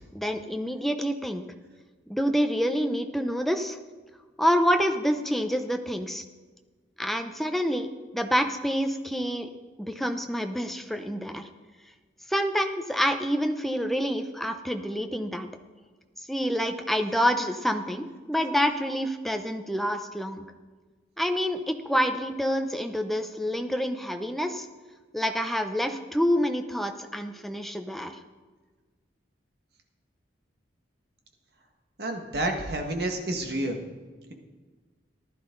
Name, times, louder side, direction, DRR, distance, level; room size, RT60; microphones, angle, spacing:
voice 1, 0.1-1.4 2.1-3.8 4.4-6.2 7.0-9.5 9.8-11.5 12.3-15.5 16.3-20.5 21.2-24.7 25.1-28.2, equal, ahead, 6 dB, 0.6 m, -27 dB
voice 2, 32.0-33.8, right 1 dB, 60° right, 3 dB, 1.7 m, -29 dB
15.0 x 11.5 x 3.9 m, 1.4 s
head